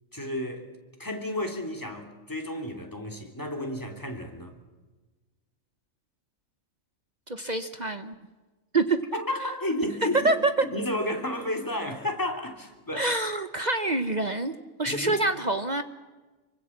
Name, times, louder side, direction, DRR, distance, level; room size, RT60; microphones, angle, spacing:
voice 1, 0.1-0.7 1.0-4.5 9.1-10.3 10.7-13.1 14.9-15.2, left 1 dB, 15° left, 3 dB, 3.0 m, -32 dB
voice 2, 7.3-8.1 8.7-9.0 10.2-10.5 12.9-14.5 14.8-15.8, right 2 dB, 35° right, 10 dB, 0.9 m, -26 dB
26.0 x 24.0 x 7.3 m, 1.2 s
omnidirectional pair, 1.4 m